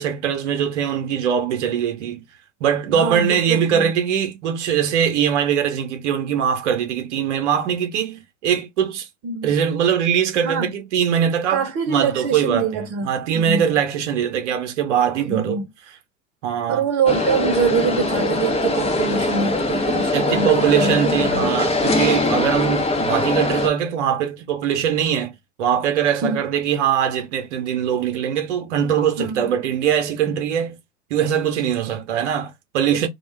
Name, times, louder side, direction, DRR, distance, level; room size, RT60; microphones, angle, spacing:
voice 1, 0.0-2.2 2.6-9.1 9.4-12.7 13.0-15.6 16.4-16.8 20.1-25.3 25.6-30.8 31.1-33.1, right 8 dB, 70° right, 0.8 m, -22 dB
voice 2, 2.9-3.9 9.2-9.5 10.4-10.7 11.5-13.7 15.3-15.7 16.7-21.7 26.2-26.4 29.2-29.5 32.9-33.1, right 5 dB, 40° right, 0.9 m, -24 dB
sound 1, 17.1-23.7, left 2 dB, 15° left, 0.8 m, -21 dB
2.3 x 2.2 x 3.2 m
figure-of-eight pair, 75°, 37 cm